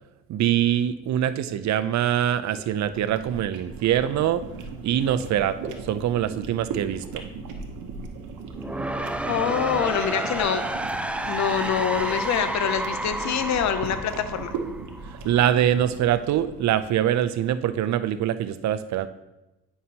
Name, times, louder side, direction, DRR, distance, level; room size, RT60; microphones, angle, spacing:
voice 1, 0.3-4.4 4.8-7.2 15.3-19.1, right 11 dB, 65° right, 12 dB, 0.5 m, -24 dB
sound 1, 2.2-17.4, right 5 dB, 85° right, 0.9 m, -38 dB
sound 2, 8.4-15.4, right 1 dB, 5° right, 0.3 m, -30 dB
voice 2, 9.3-10.6 11.2-14.5, left 8 dB, 65° left, 10 dB, 0.7 m, -25 dB
9.3 x 5.6 x 2.9 m, 1.0 s
cardioid pair, 90°, 30 cm